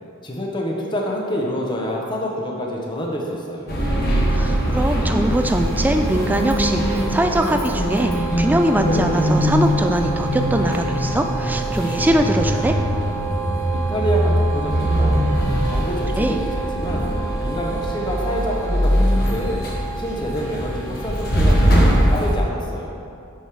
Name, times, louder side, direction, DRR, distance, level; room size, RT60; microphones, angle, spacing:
voice 1, 0.2-3.7 13.7-15.3 15.6-17.1 17.4-19.6 20.0-22.9, equal, 20° left, -1 dB, 0.7 m, -27 dB
sound 1, 3.7-22.4, equal, 45° left, 1.2 m, -21 dB
voice 2, 4.3-12.7 16.2-16.4, right 1 dB, 10° right, 5 dB, 0.3 m, -21 dB
Wind instrument woodwind instrument, 6.0-19.4, right 5 dB, 85° right, 1.1 m, -33 dB
9.0 x 6.2 x 3.3 m, 2.5 s
head